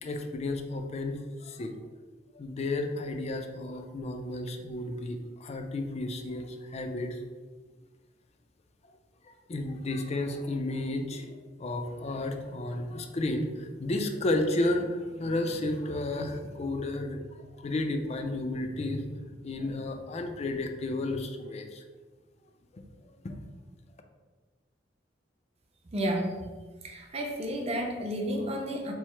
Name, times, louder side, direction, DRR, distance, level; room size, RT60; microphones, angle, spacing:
voice 1, 0.0-1.7 2.3-7.2 9.5-11.3 11.6-17.2 17.6-21.8 22.7-22.8 23.2-23.4, left 2 dB, 35° left, 5 dB, 0.4 m, -32 dB
voice 2, 25.9-26.3 26.8-28.9, equal, 35° right, 1 dB, 0.6 m, -31 dB
4.6 x 2.1 x 4.3 m, 1.4 s
head